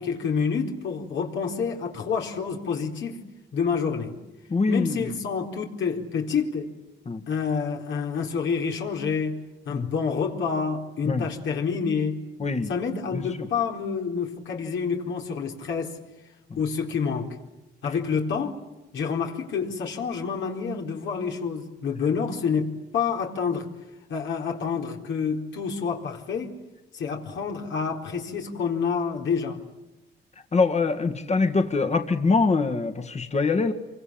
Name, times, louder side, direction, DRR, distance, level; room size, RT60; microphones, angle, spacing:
voice 1, 0.0-3.2 3.5-4.2 4.7-6.7 7.3-9.4 9.7-12.2 12.7-16.0 16.6-17.4 17.8-18.6 18.9-23.7 24.1-26.6 26.9-29.6, left 6 dB, 70° left, 1 dB, 4.2 m, -28 dB
voice 2, 4.5-5.1 7.1-7.2 9.7-9.9 11.0-11.2 12.4-12.7 13.1-13.2 30.5-33.7, left 4 dB, 35° left, 7 dB, 2.1 m, -23 dB
27.0 x 25.0 x 8.9 m, 1.0 s
cardioid pair, 90°, 20 cm